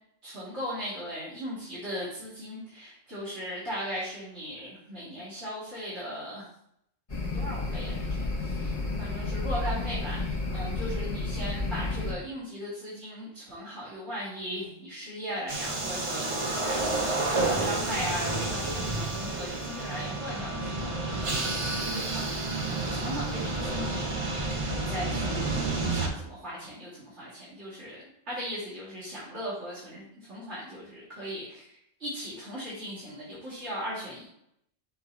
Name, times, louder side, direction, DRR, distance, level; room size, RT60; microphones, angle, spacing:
voice 1, 0.2-6.5 7.3-28.0 28.3-34.3, equal, 80° right, -10 dB, 2.7 m, -38 dB
sound 1, 7.1-12.1, left 3 dB, 30° left, 1.3 m, -31 dB
sound 2, 15.5-26.1, right 2 dB, 30° right, 0.8 m, -30 dB
7.1 x 2.9 x 4.5 m, 0.73 s
omnidirectional pair, 1.2 m